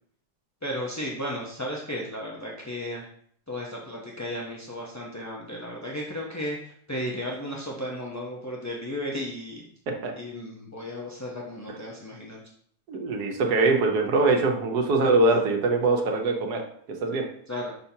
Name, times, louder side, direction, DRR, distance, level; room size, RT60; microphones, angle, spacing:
voice 1, 0.6-3.1 3.5-9.6 10.2-12.4 17.5-17.7, left 1 dB, 20° left, -3 dB, 0.4 m, -34 dB
voice 2, 12.9-16.6 16.9-17.3, right 3 dB, 90° right, 2 dB, 1.5 m, -23 dB
6.3 x 5.7 x 2.7 m, 0.62 s
omnidirectional pair, 1.6 m